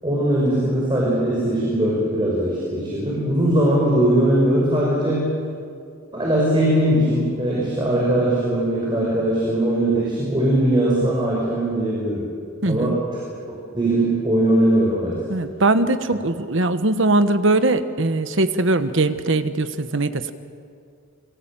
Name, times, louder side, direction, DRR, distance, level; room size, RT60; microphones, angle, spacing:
voice 1, 0.0-5.3 6.1-12.2 12.6-13.0 13.3-15.2, right 1 dB, 20° right, -5 dB, 6.2 m, -20 dB
voice 2, 12.6-13.0 15.3-20.3, right 2 dB, 60° right, 10 dB, 1.3 m, -20 dB
27.5 x 23.5 x 9.0 m, 2.3 s
head